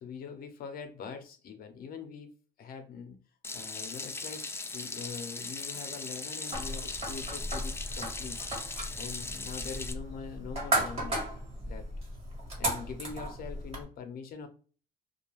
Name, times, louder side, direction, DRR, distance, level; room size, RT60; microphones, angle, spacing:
voice 1, 0.0-2.3 2.6-3.1 3.5-4.4 4.7-8.4 8.9-11.3 11.5-11.8 12.6-14.5, left 6 dB, 60° left, 6 dB, 0.7 m, -43 dB
Water tap faucet / Sink (filling or washing), 3.4-9.9, left 3 dB, 15° left, 0.3 m, -39 dB
sound 1, 6.5-13.8, right 1 dB, 35° right, 1.3 m, -35 dB
2.4 x 2.2 x 3.1 m, 0.38 s
cardioid pair, 110°, 17 cm